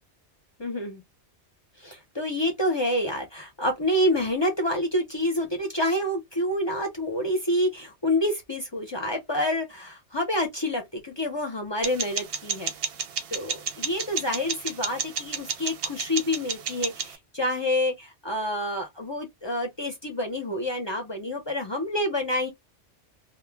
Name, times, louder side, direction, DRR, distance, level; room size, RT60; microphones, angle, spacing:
voice 1, 0.6-1.0 1.8-12.7 13.3-22.5, left 1 dB, 35° left, 0.5 m, -28 dB
sound 1, 11.8-17.1, right 6 dB, 65° right, 0.7 m, -32 dB
2.2 x 2.1 x 3.2 m
omnidirectional pair, 1.2 m